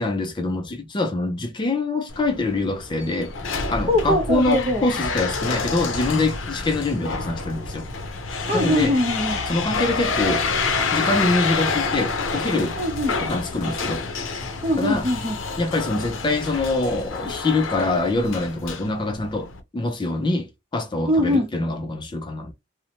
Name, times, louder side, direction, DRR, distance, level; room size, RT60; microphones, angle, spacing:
voice 1, 0.0-3.3 3.7-7.9 8.5-8.9 9.5-10.5 10.9-12.8 13.2-14.1 14.8-15.1 15.6-22.5, left 2 dB, 25° left, 0.4 m, -24 dB
sound 1, 2.1-19.6, left 4 dB, 80° left, 0.6 m, -28 dB
voice 2, 3.9-4.9 8.5-9.4 12.8-13.1 14.6-15.4 21.1-21.5, left 1 dB, 30° right, 0.6 m, -22 dB
2.6 x 2.1 x 2.8 m
head